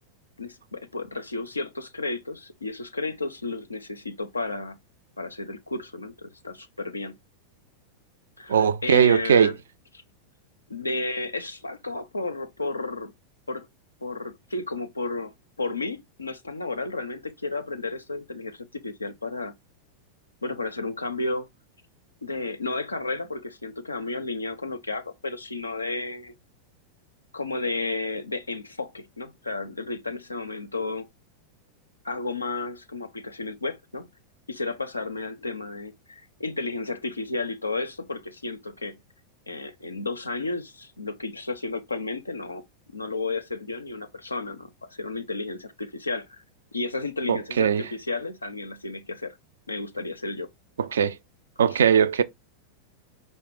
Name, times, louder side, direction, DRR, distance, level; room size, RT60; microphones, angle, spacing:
voice 1, 0.4-4.8 5.2-7.2 8.4-9.6 10.7-13.1 13.5-13.7 14.0-15.3 15.6-19.5 20.4-21.5 22.2-26.3 27.3-31.1 32.0-34.1 34.5-39.0 39.5-42.6 42.9-46.4 46.7-49.4 49.7-50.5 51.7-51.8, left 3 dB, 80° left, 0.4 m, -32 dB
voice 2, 8.5-9.5 47.3-47.8 50.8-51.1 51.6-52.2, right 8 dB, 65° right, 0.3 m, -19 dB
4.7 x 2.1 x 3.4 m
figure-of-eight pair, 90°, 0 cm